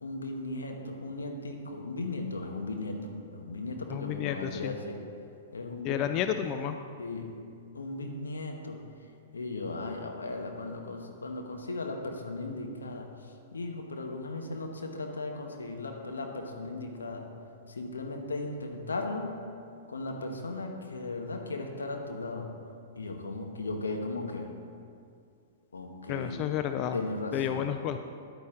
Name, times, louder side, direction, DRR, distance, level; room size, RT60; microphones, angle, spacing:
voice 1, 0.0-5.0 5.5-6.1 6.4-6.6 7.0-7.3 7.7-8.8 9.3-17.2 17.7-19.4 19.9-22.5 23.0-24.5 25.7-26.4 26.9-27.7, left 2 dB, 85° left, 3 dB, 1.1 m, -37 dB
voice 2, 3.9-4.7 5.8-6.7 26.1-27.0 27.3-28.0, left 10 dB, 40° left, 8 dB, 0.4 m, -31 dB
10.5 x 9.2 x 3.7 m, 2.4 s
hypercardioid pair, 110°, 0 cm